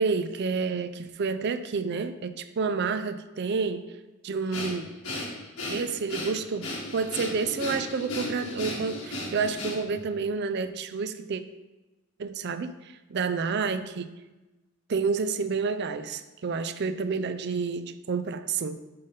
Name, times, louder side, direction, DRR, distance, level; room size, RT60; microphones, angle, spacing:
voice 1, 0.0-3.9 4.2-4.8 5.7-6.7 6.9-11.4 12.2-14.1 14.9-18.8, right 5 dB, 50° right, 12 dB, 0.4 m, -29 dB
Breathing, 4.5-10.0, left 1 dB, 85° left, 1.8 m, -35 dB
5.6 x 5.4 x 5.3 m, 1.1 s
head